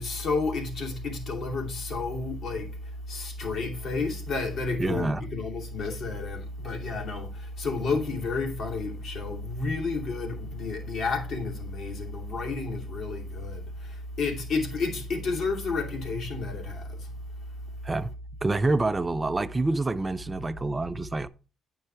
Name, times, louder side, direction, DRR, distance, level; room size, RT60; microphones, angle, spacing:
voice 1, 0.0-17.1 17.4-17.8, left 3 dB, 60° left, 2.5 m, -31 dB
voice 2, 4.8-5.2 17.8-18.1 18.4-21.3, right 2 dB, 25° right, 0.5 m, -27 dB
9.4 x 5.5 x 4.5 m
cardioid pair, 90°, 0 cm